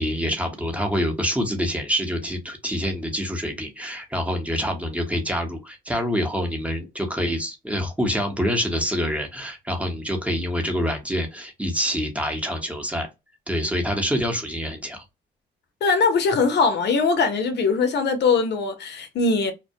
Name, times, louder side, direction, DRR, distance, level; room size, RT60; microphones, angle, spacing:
voice 1, 0.0-13.1 13.5-15.0, equal, 5° right, 0.8 m, -26 dB
voice 2, 15.8-19.5, left 4 dB, 60° left, 0.6 m, -21 dB
2.2 x 2.1 x 2.6 m
cardioid pair, 90°, 20 cm